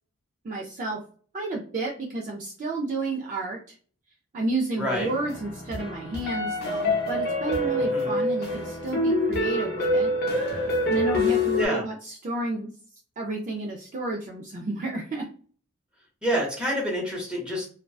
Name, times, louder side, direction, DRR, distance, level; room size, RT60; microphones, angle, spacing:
voice 1, 0.4-1.0 1.3-3.7 4.3-10.1 10.9-12.7 13.2-15.2, right 2 dB, 35° right, -1 dB, 0.3 m, -31 dB
voice 2, 4.8-5.1 7.8-8.2 11.6-11.8 16.2-17.7, equal, 5° right, -2 dB, 0.7 m, -28 dB
sound 1, 4.9-11.7, left 1 dB, 45° left, 0.6 m, -26 dB
2.5 x 2.1 x 2.2 m, 0.43 s
head